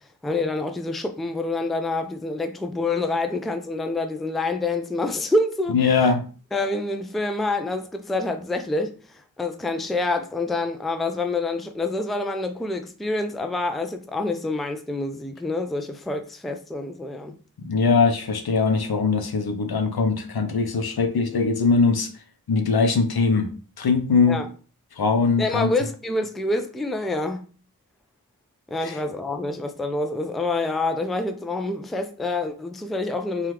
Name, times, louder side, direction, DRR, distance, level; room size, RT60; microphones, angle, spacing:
voice 1, 0.2-5.8 6.5-9.0 9.4-17.3 24.3-24.5 25.4-27.4 28.7-33.5, left 2 dB, ahead, 0.3 m, -27 dB
voice 2, 5.7-6.2 17.6-22.1 22.5-23.5 23.8-24.4 25.0-25.7 28.8-29.0, left 4 dB, 80° left, 0.6 m, -21 dB
3.3 x 2.3 x 2.9 m
wide cardioid pair, 45°, 37 cm